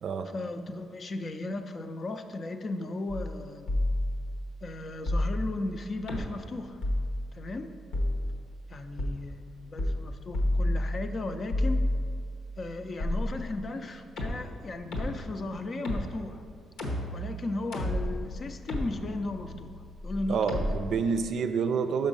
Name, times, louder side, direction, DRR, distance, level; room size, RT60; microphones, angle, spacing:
voice 1, 0.3-3.7 4.6-6.8 7.3-7.7 8.7-11.9 12.6-16.4 17.1-20.6, left 2 dB, 40° left, 7 dB, 0.5 m, -36 dB
sound 1, 3.1-3.4 3.7-4.5 5.1-5.7 6.1-6.5 6.8-7.4 7.9-8.5 9.0-9.1 9.8-10.1 10.3-11.2 11.5-12.4 13.0-13.8 14.2-20.7, left 1 dB, 85° left, 1.1 m, -31 dB
voice 2, 20.3-22.1, right 5 dB, 65° right, 8 dB, 0.4 m, -28 dB
6.1 x 5.2 x 5.4 m, 2.2 s
cardioid pair, 90°, 0 cm